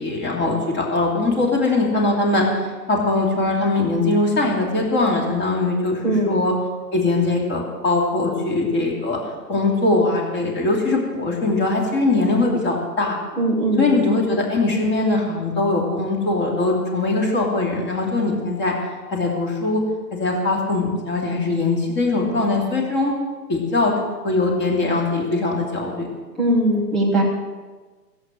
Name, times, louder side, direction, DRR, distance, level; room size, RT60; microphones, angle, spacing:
voice 1, 0.0-2.4 2.9-6.5 6.9-9.2 9.5-13.2 13.8-18.7 19.1-19.8 20.1-23.1 23.5-23.9 24.2-26.1, left 2 dB, 20° left, -1 dB, 2.8 m, -21 dB
voice 2, 6.0-6.3 13.4-13.9 26.4-27.2, right 1 dB, ahead, -4 dB, 0.6 m, -19 dB
15.5 x 7.9 x 7.3 m, 1.3 s
hypercardioid pair, 145°, 50 cm